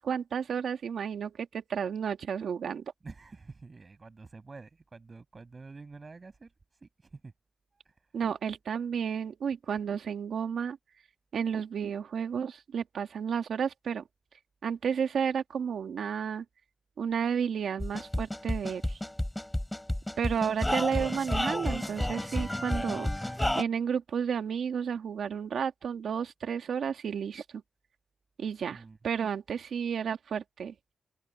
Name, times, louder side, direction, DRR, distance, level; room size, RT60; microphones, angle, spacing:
voice 1, 0.0-2.8 8.1-10.8 11.3-14.0 14.6-16.4 17.0-19.0 20.2-23.1 23.5-27.6 28.4-30.7, right 7 dB, 70° right, 2.0 m, -32 dB
voice 2, 3.0-6.5 6.8-7.3 7.9-8.0 28.7-29.0, right 4 dB, 30° right, 7.0 m, -48 dB
sound 1, 17.8-23.6, left 1 dB, 5° left, 5.7 m, -31 dB
wide cardioid pair, 145°, 0 cm